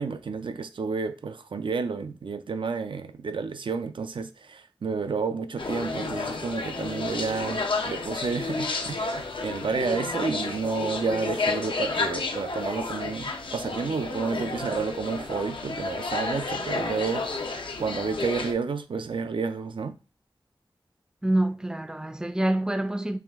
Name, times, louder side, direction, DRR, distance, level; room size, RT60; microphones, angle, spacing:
voice 1, 0.0-17.5 17.8-20.0, right 5 dB, 80° right, 0.4 m, -30 dB
sound 1, 5.6-18.5, left 3 dB, 80° left, 0.6 m, -31 dB
voice 2, 21.2-23.2, right 1 dB, 10° right, 0.4 m, -26 dB
4.8 x 2.4 x 3.4 m
wide cardioid pair, 65°, 8 cm